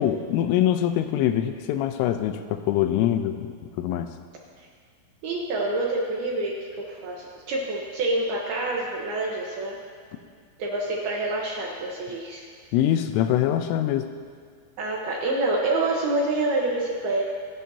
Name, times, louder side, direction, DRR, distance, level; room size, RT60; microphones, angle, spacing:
voice 1, 0.0-4.1 12.7-14.1, left 11 dB, 90° left, 8 dB, 3.3 m, -24 dB
voice 2, 5.2-9.8 10.6-12.5 14.8-17.2, right 2 dB, 70° right, -2 dB, 2.5 m, -27 dB
25.5 x 10.5 x 2.8 m, 2.1 s
omnidirectional pair, 5.7 m